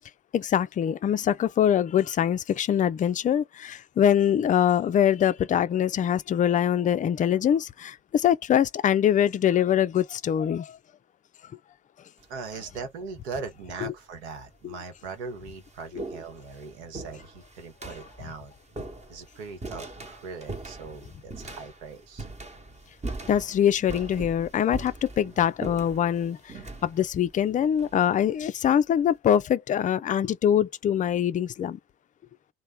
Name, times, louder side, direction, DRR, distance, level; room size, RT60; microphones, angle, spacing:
voice 1, 0.3-10.8 23.2-31.8, left 9 dB, 25° left, 0.4 m, -23 dB
sound 1, 12.2-12.6 13.6-13.7 14.5-14.6 15.0-28.5, right 2 dB, 20° right, 1.0 m, -41 dB
voice 2, 12.3-18.5 19.1-22.2, right 5 dB, 70° right, 1.0 m, -40 dB
3.1 x 2.2 x 3.5 m
figure-of-eight pair, 50°, 34 cm